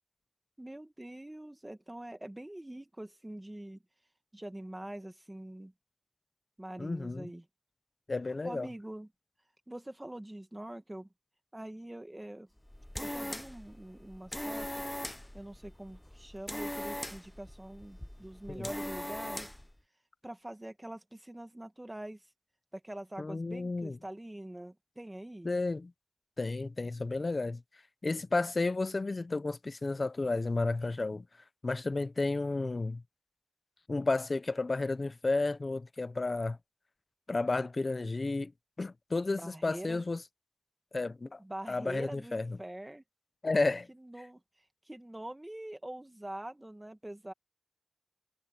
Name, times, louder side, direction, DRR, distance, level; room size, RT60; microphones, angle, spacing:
voice 1, 0.6-3.8 4.3-5.7 6.6-7.5 8.4-9.1 9.7-11.1 11.5-12.5 13.0-14.8 15.3-19.5 20.2-22.3 22.7-25.5 39.3-40.0 41.4-43.0 43.9-44.4 44.9-47.3, right 1 dB, 25° right, 2.0 m, -44 dB
voice 2, 6.8-7.3 8.1-8.7 18.5-18.7 23.2-24.0 25.4-25.9 26.4-27.6 28.0-31.2 31.6-33.0 33.9-36.6 37.3-38.5 38.8-40.2 40.9-41.4 41.7-42.4 43.4-43.9, left 3 dB, 65° left, 0.7 m, -32 dB
sound 1, 12.6-19.7, left 1 dB, 15° left, 0.5 m, -41 dB
wide cardioid pair, 55°, 0 cm